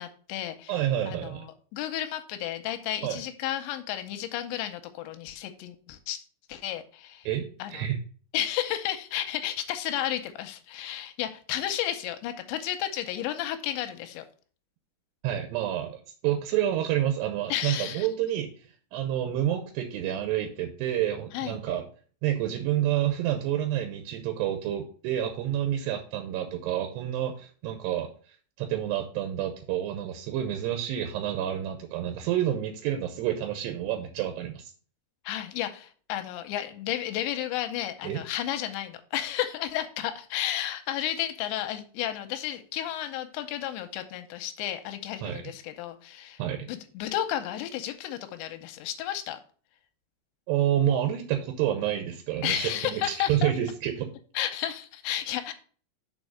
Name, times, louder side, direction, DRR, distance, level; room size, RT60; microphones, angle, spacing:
voice 1, 0.0-0.8 1.1-6.2 6.5-7.3 7.6-7.9 8.3-14.2 17.5-18.1 21.3-21.6 35.2-46.4 46.7-49.4 52.4-53.5 54.4-55.5, left 12 dB, 85° left, 8 dB, 2.8 m, -32 dB
voice 2, 0.7-1.5 3.0-3.2 7.3-8.0 15.2-18.5 18.9-21.8 22.2-28.1 28.6-34.7 38.0-38.2 45.2-45.4 46.4-46.7 50.5-54.1, right 11 dB, 80° right, 6 dB, 2.6 m, -29 dB
6.3 x 4.8 x 6.2 m, 0.42 s
omnidirectional pair, 5.4 m